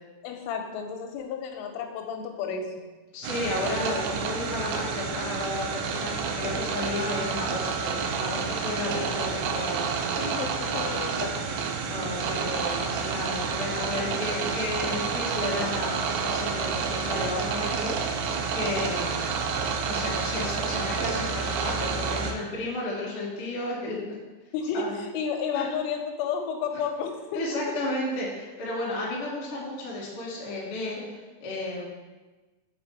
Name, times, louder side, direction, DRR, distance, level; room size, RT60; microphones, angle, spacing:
voice 1, 0.2-2.8 8.9-9.3 10.2-11.4 24.5-27.8, left 6 dB, 90° left, 4 dB, 3.1 m, -32 dB
voice 2, 3.1-9.9 11.9-18.3 18.5-19.2 19.9-24.0 24.7-24.9 25.5-25.6 27.3-31.8, left 2 dB, 70° left, -5 dB, 1.3 m, -33 dB
sound 1, 3.2-22.3, right 5 dB, 85° right, 2.5 m, -29 dB
7.2 x 3.5 x 3.9 m, 1.2 s
omnidirectional pair, 5.5 m